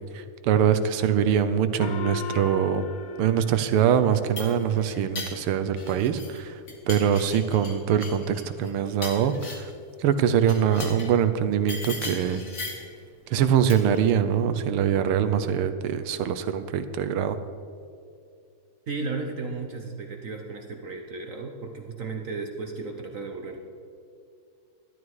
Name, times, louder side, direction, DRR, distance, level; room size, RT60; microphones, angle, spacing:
voice 1, 0.1-2.8 3.2-6.6 6.9-9.7 10.0-12.4 13.3-17.4, right 8 dB, 80° right, 11 dB, 1.6 m, -23 dB
Gong, 1.8-4.7, left 7 dB, 65° left, 0.9 m, -38 dB
sound 1, 4.0-6.4 6.7-9.8 10.4-11.2 11.7-12.9 13.7-14.0, left 3 dB, 45° left, 2.1 m, -38 dB
voice 2, 18.9-23.6, right 4 dB, 55° right, 3 dB, 0.9 m, -34 dB
12.5 x 11.5 x 4.7 m, 2.4 s
omnidirectional pair, 2.4 m